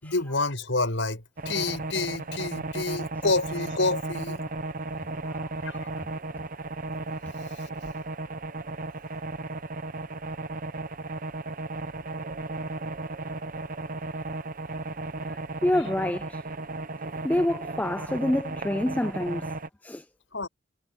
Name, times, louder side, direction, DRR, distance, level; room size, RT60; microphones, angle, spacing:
voice 1, 0.0-4.4 5.6-6.0 7.6-7.7 15.8-15.9 20.3-20.5, left 3 dB, 80° left, 5.5 m, -29 dB
sound 1, 1.4-19.7, right 2 dB, 45° right, 1.0 m, -35 dB
voice 2, 15.6-16.4 17.2-19.5 19.8-20.0, left 1 dB, 10° left, 0.4 m, -26 dB
head